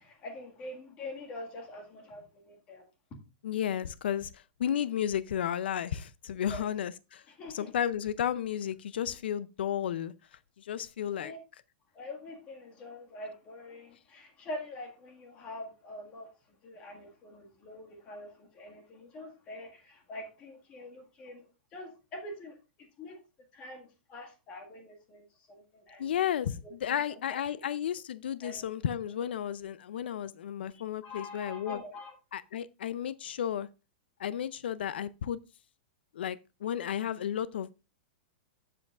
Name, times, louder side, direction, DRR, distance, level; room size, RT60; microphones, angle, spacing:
voice 1, 0.0-2.9 6.4-6.7 7.3-7.7 11.0-11.4 11.9-23.2 23.5-26.1 26.6-27.6 28.4-28.7 30.7-32.2, left 1 dB, 20° left, 1.8 m, -45 dB
voice 2, 3.4-7.2 7.5-10.1 10.6-11.3 26.0-31.8 32.3-33.7 34.2-35.4 36.1-37.7, left 9 dB, 80° left, 0.5 m, -33 dB
13.0 x 7.6 x 2.4 m
supercardioid pair, 175°, 5 cm